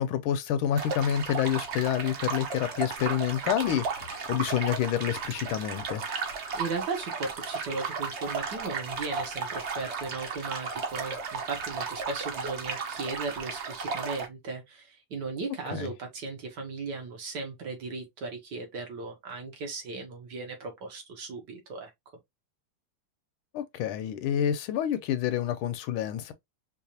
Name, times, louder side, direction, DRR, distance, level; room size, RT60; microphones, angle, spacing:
voice 1, 0.0-6.1 15.7-15.9 23.5-26.3, left 10 dB, 80° left, 1.3 m, -28 dB
sound 1, 0.8-14.3, right 5 dB, 85° right, 0.6 m, -34 dB
voice 2, 6.5-21.9, right 4 dB, 60° right, 1.5 m, -37 dB
4.7 x 2.4 x 2.7 m
omnidirectional pair, 2.4 m